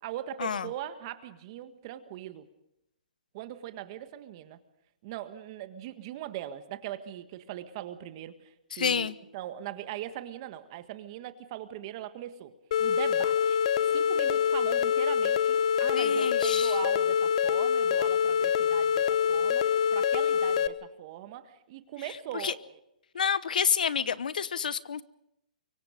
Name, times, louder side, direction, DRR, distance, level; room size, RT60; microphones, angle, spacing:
voice 1, 0.0-2.5 3.3-4.6 5.0-12.5 12.8-22.6, right 12 dB, 35° right, 10 dB, 1.7 m, -40 dB
voice 2, 8.7-9.1 15.9-16.8 22.3-22.5 23.1-25.0, left 7 dB, 80° left, 17 dB, 1.0 m, -29 dB
sound 1, 12.7-20.7, left 7 dB, 50° left, 1.1 m, -25 dB
24.5 x 23.0 x 5.2 m, 0.80 s
hypercardioid pair, 155°, 4 cm